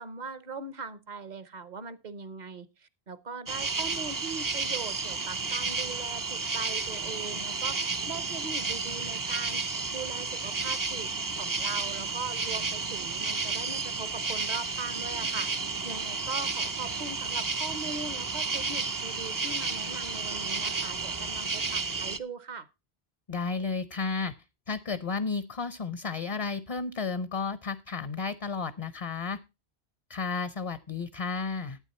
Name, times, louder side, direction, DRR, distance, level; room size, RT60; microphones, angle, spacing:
voice 1, 0.0-9.6 9.9-11.1 11.4-15.5 15.8-22.7, right 4 dB, 45° right, 1.0 m, -40 dB
sound 1, 3.5-22.2, right 4 dB, 25° right, 0.5 m, -32 dB
voice 2, 23.3-24.3 24.7-29.4 30.1-31.8, left 4 dB, 40° left, 0.6 m, -32 dB
12.0 x 9.0 x 4.2 m
omnidirectional pair, 1.1 m